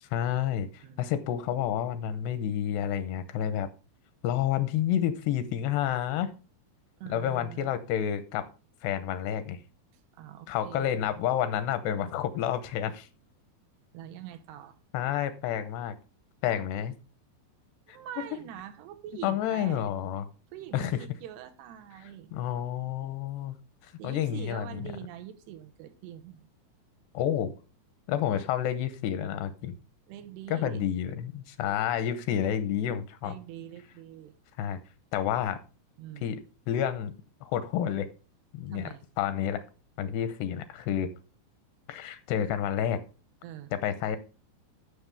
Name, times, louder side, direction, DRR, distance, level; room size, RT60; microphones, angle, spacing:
voice 1, 0.0-3.7 4.2-6.3 7.1-8.5 8.8-9.6 10.5-13.1 14.9-16.0 16.4-16.9 19.2-20.2 20.7-20.9 22.3-23.6 23.8-24.9 27.1-27.5 28.1-29.7 30.5-33.3 34.6-34.8 35.1-35.6 36.2-36.4 36.7-37.1 37.4-38.1 38.5-38.9 39.2-39.6 40.0-41.1 41.9-43.0 43.7-44.2, left 10 dB, 85° left, 2.9 m, -29 dB
voice 2, 0.8-1.1 7.0-7.8 10.1-11.0 13.9-14.8 17.9-19.9 20.5-22.3 24.0-26.5 30.1-30.9 33.2-34.4 36.0-36.3 38.7-39.0 43.4-43.7, right 11 dB, 85° right, 3.0 m, -44 dB
13.5 x 6.2 x 3.5 m
omnidirectional pair, 4.8 m